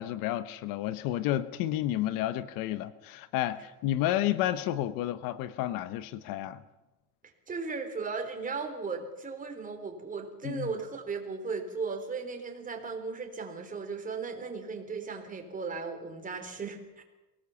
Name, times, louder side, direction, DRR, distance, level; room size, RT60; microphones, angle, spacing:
voice 1, 0.0-6.6 10.4-10.7, left 13 dB, 65° left, 14 dB, 1.1 m, -31 dB
voice 2, 7.5-17.0, right 4 dB, 20° right, 4 dB, 3.7 m, -36 dB
23.5 x 18.0 x 7.1 m, 1.0 s
cardioid pair, 130°, 36 cm